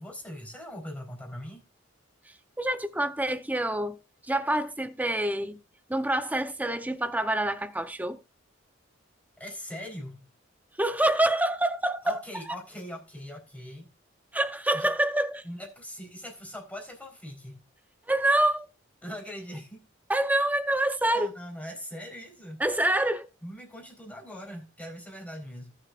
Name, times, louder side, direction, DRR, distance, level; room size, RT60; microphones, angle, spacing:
voice 1, 0.0-1.6 9.4-10.3 12.0-13.9 14.7-14.9 15.4-17.6 19.0-19.9 21.0-22.6 23.4-25.8, equal, 5° left, 3.8 m, -41 dB
voice 2, 2.6-4.0 4.2-5.6 5.9-8.2 10.8-12.2 14.3-15.4 18.1-18.7 20.1-21.3 22.6-23.3, right 1 dB, 10° right, 0.7 m, -26 dB
19.0 x 6.6 x 2.4 m
head